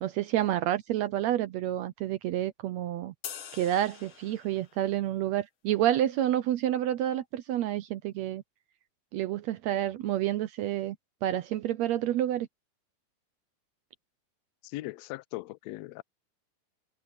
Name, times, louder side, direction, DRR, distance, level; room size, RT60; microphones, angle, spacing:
voice 1, 0.0-3.1 3.5-8.4 9.1-11.0 11.2-12.5, right 12 dB, 80° right, 1.7 m, -29 dB
sound 1, 3.2-4.9, left 9 dB, 55° left, 1.5 m, -44 dB
voice 2, 14.6-16.0, left 19 dB, 90° left, 1.5 m, -39 dB
omnidirectional pair, 3.6 m